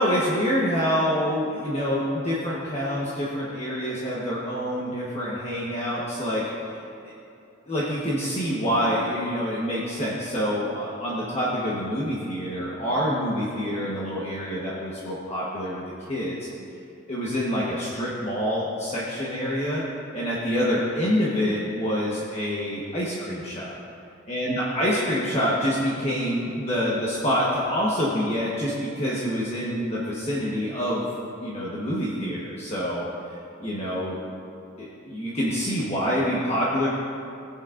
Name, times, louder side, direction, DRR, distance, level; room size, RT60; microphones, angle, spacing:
voice 1, 0.0-7.1 7.7-16.5 17.1-19.8 20.1-23.7 24.3-31.1 31.4-34.2 34.8-36.9, equal, 35° left, -7 dB, 1.2 m, -26 dB
16.0 x 8.6 x 2.6 m, 2.6 s
head